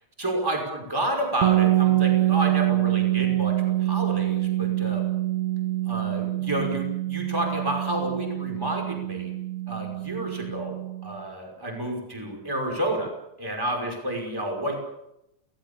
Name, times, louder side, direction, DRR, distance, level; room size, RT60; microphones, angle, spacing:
voice 1, 0.2-3.5 3.8-5.1 5.9-9.3 9.7-13.1 13.4-14.8, right 1 dB, 5° right, 1 dB, 5.4 m, -30 dB
sound 1, 1.4-11.2, right 15 dB, 70° right, 2.2 m, -25 dB
28.5 x 18.5 x 7.1 m, 0.84 s
omnidirectional pair, 3.6 m